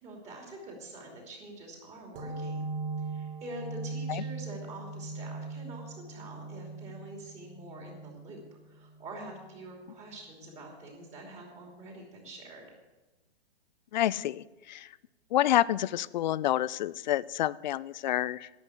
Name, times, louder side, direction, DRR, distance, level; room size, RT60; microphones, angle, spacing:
voice 1, 0.0-2.7 3.0-12.7, right 2 dB, 20° right, 1 dB, 2.9 m, -46 dB
sound 1, 2.2-9.5, right 3 dB, 50° right, 2.7 m, -40 dB
voice 2, 13.9-14.9 15.3-18.5, left 13 dB, 45° left, 19 dB, 0.4 m, -28 dB
11.5 x 8.2 x 8.2 m, 1.2 s
hypercardioid pair, 145°, 33 cm